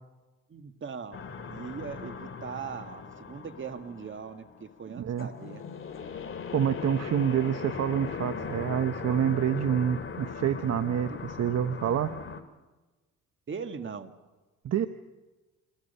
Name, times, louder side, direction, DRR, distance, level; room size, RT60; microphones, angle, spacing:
voice 1, 0.5-1.2 1.5-5.6 13.5-14.1, right 6 dB, 40° right, 8 dB, 1.9 m, -40 dB
sound 1, 1.1-12.4, left 5 dB, 45° left, 2.3 m, -39 dB
voice 2, 5.0-5.3 6.5-12.1 14.6-14.9, right 9 dB, 55° right, 10 dB, 1.0 m, -27 dB
28.0 x 21.0 x 5.5 m, 1.2 s
cardioid pair, 90°, 30 cm